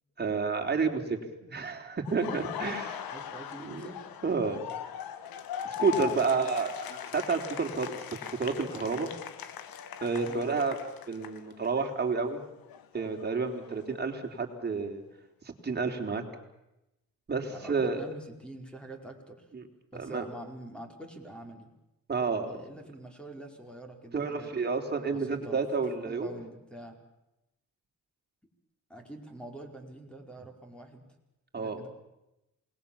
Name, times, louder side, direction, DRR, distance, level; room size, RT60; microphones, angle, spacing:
voice 1, 0.2-3.1 3.6-3.9 4.2-4.7 5.6-7.9 8.4-9.1 10.0-10.8 11.1-12.4 12.9-15.0 15.5-16.2 17.3-18.0 19.5-19.6 20.0-20.2 22.1-22.6 24.1-26.3 31.5-31.8, right 4 dB, 30° right, 3 dB, 4.0 m, -30 dB
Laughter, 2.0-11.9 12.2-14.2, left 10 dB, 90° left, 2.0 m, -40 dB
voice 2, 3.1-4.1 5.7-6.5 10.2-10.5 17.5-19.5 19.9-21.7 22.5-24.5 25.1-25.6 26.0-27.0 28.9-31.0 31.6-31.9, right 1 dB, 5° left, 2 dB, 5.0 m, -45 dB
28.0 x 20.5 x 7.3 m, 0.92 s
cardioid pair, 110°, 34 cm